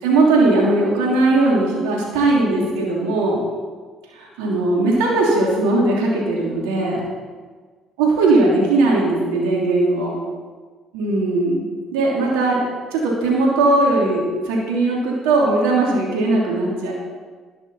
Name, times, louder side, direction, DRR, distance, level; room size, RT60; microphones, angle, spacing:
voice 1, 0.0-3.4 4.2-7.0 8.0-10.1 10.9-12.6 12.9-16.9, right 2 dB, 85° right, -3 dB, 3.1 m, -18 dB
11.5 x 11.5 x 4.3 m, 1.5 s
supercardioid pair, 65°, 0 cm